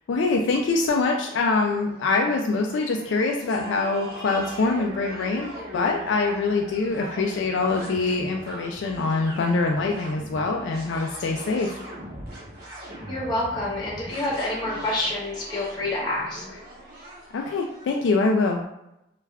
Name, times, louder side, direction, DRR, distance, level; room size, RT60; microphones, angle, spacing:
voice 1, 0.1-11.7 17.3-18.6, left 3 dB, 75° left, 1 dB, 0.3 m, -24 dB
sound 1, 1.3-18.3, right 1 dB, 50° right, 0.9 m, -41 dB
voice 2, 13.1-16.6, left 1 dB, 25° left, -6 dB, 0.6 m, -28 dB
3.4 x 2.3 x 2.2 m, 0.86 s
head